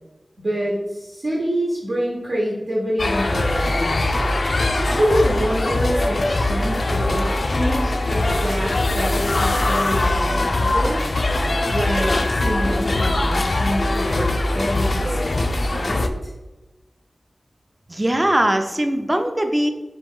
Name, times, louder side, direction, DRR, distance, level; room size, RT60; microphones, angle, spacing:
voice 1, 0.4-4.0 4.8-11.2 11.7-15.4 15.7-16.1, equal, 65° right, -5 dB, 1.0 m, -26 dB
sound 1, 3.0-16.1, left 2 dB, 65° left, 0.3 m, -21 dB
voice 2, 17.9-19.7, right 1 dB, 25° right, 5 dB, 0.5 m, -20 dB
4.4 x 2.9 x 3.6 m, 1.1 s
wide cardioid pair, 50°, 0 cm